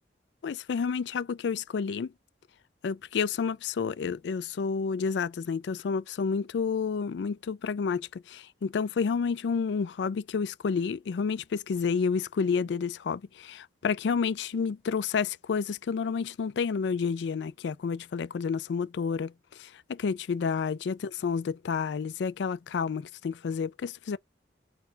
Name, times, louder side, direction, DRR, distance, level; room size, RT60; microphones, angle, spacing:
voice 1, 0.4-2.1 2.8-19.3 19.6-21.0 21.2-24.2, left 5 dB, 70° left, 0.4 m, -30 dB
4.4 x 2.2 x 3.9 m
head